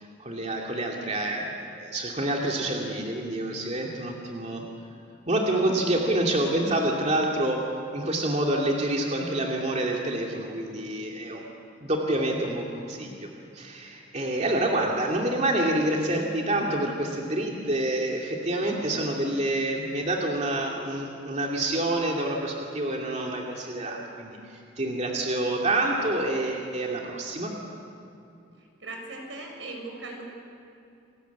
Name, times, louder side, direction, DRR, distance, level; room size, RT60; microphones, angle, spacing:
voice 1, 0.2-4.6 5.3-7.6 7.9-11.4 11.8-13.3 13.5-27.5, right 1 dB, 40° right, -1 dB, 2.6 m, -27 dB
voice 2, 28.8-30.2, right 2 dB, 90° right, 1 dB, 6.7 m, -38 dB
29.0 x 20.0 x 8.4 m, 2.6 s
head